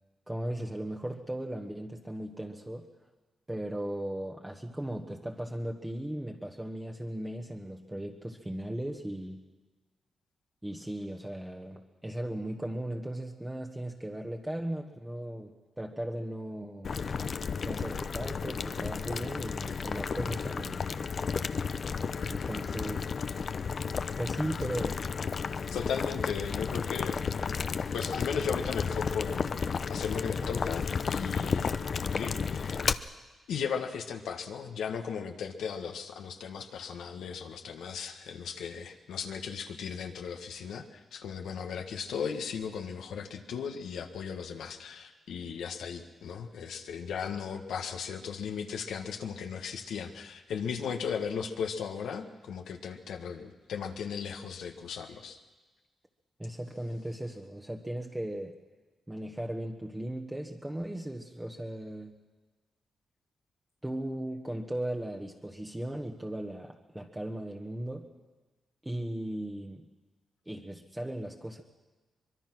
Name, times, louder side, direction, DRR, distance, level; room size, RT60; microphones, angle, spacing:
voice 1, 0.3-2.8 3.5-9.4 10.6-17.0 17.6-20.8 22.3-23.1 24.2-25.0 56.4-58.6 59.1-62.2 63.8-68.1 68.8-69.9 70.4-71.6, right 1 dB, 10° right, 1 dB, 1.4 m, -37 dB
Boiling, 16.8-32.9, left 5 dB, 50° left, 0.8 m, -33 dB
voice 2, 25.7-27.3 27.9-32.8 33.5-55.4, left 6 dB, 90° left, 4 dB, 1.5 m, -36 dB
24.0 x 21.5 x 6.2 m, 1.2 s
cardioid pair, 95°, 0 cm